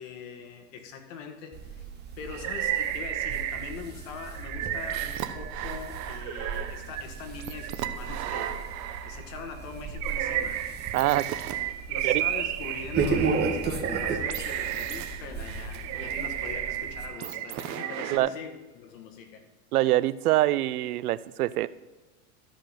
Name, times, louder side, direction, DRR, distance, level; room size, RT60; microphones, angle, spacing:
voice 1, 0.0-1.9 2.2-8.6 9.0-10.6 11.0-11.2 11.9-19.4, left 6 dB, 60° left, 5 dB, 1.8 m, -42 dB
sound 1, 1.5-17.1, right 4 dB, 20° right, 1.5 m, -35 dB
sound 2, 2.3-3.9 4.2-9.3 9.8-18.2, right 11 dB, 40° right, 0.8 m, -33 dB
voice 2, 10.9-11.3 12.0-12.2 18.1-18.3 19.7-21.7, right 15 dB, 80° right, 18 dB, 0.6 m, -24 dB
13.5 x 5.1 x 5.8 m, 1.2 s
hypercardioid pair, 115°, 44 cm